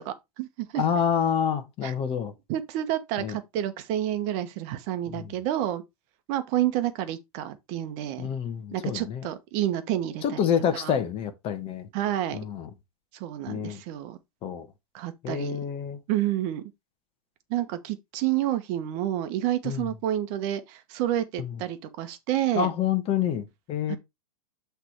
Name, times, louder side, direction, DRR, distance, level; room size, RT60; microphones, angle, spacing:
voice 1, 0.0-0.8 1.8-1.9 2.5-5.8 6.3-8.3 8.7-10.4 10.8-10.9 11.9-12.4 13.1-14.2 14.9-15.6 16.1-16.6 17.5-22.7 23.9-24.0, right 12 dB, 40° right, 1.0 m, -29 dB
voice 2, 0.8-2.3 3.2-3.4 5.1-5.3 8.2-9.3 10.2-11.9 12.3-12.7 13.5-13.8 14.4-14.7 15.2-16.0 19.6-19.9 21.4-21.6 22.5-24.0, left 8 dB, 30° left, 1.1 m, -28 dB
8.0 x 3.4 x 4.4 m
hypercardioid pair, 120°, 19 cm